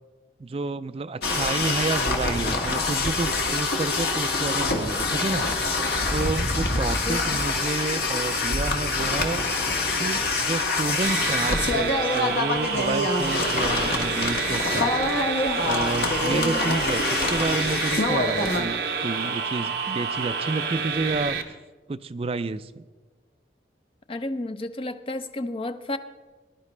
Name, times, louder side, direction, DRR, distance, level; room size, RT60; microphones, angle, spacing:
voice 1, 0.4-5.8 6.1-9.4 10.0-14.9 15.6-21.4 21.9-22.8, right 3 dB, 30° right, 11 dB, 0.3 m, -30 dB
sound 1, 1.2-18.6, left 3 dB, 60° left, 1.4 m, -25 dB
voice 2, 7.1-7.4 16.3-16.8 24.1-26.0, left 1 dB, 30° left, 10 dB, 0.5 m, -32 dB
sound 2, 11.0-21.4, right 5 dB, 65° right, 0.9 m, -29 dB
19.0 x 10.5 x 3.3 m, 1.3 s
head